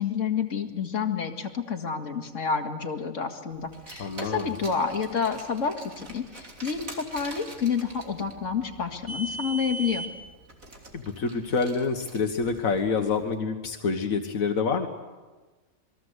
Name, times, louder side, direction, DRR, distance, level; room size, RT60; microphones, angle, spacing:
voice 1, 0.0-10.1, left 6 dB, 65° left, 3 dB, 2.4 m, -29 dB
Car, 3.7-13.2, right 2 dB, 80° right, 3.5 m, -41 dB
voice 2, 4.0-4.5 10.9-14.9, left 5 dB, 85° left, 5 dB, 1.8 m, -27 dB
27.5 x 21.0 x 8.1 m, 1.3 s
omnidirectional pair, 1.4 m